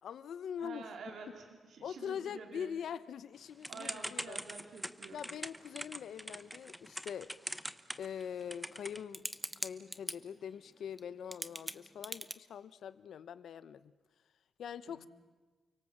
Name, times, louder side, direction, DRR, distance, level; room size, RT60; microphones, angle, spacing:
voice 1, 0.0-0.9 1.8-4.4 5.1-7.3 8.0-9.2 9.6-13.9 14.6-15.1, left 8 dB, 75° left, 15 dB, 1.0 m, -43 dB
voice 2, 0.6-2.8 3.7-5.3 14.9-15.0, right 5 dB, 70° right, 3 dB, 3.4 m, -49 dB
Typing / Telephone, 3.6-10.1 11.0-11.1 11.3-12.3, equal, 5° right, 1.0 m, -41 dB
30.0 x 24.0 x 7.4 m, 1.3 s
wide cardioid pair, 135°, 0 cm